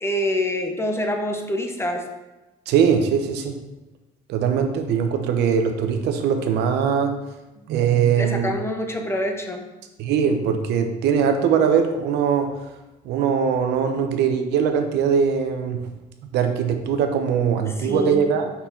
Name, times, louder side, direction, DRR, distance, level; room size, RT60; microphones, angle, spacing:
voice 1, 0.0-2.0 8.2-9.6 17.7-18.3, left 1 dB, 15° left, 4 dB, 0.8 m, -26 dB
voice 2, 2.7-3.6 4.3-7.2 7.7-8.5 10.0-12.5 13.0-15.9 16.3-18.5, right 7 dB, 80° right, 6 dB, 0.8 m, -21 dB
5.5 x 4.5 x 4.4 m, 1.0 s
cardioid pair, 110°, 17 cm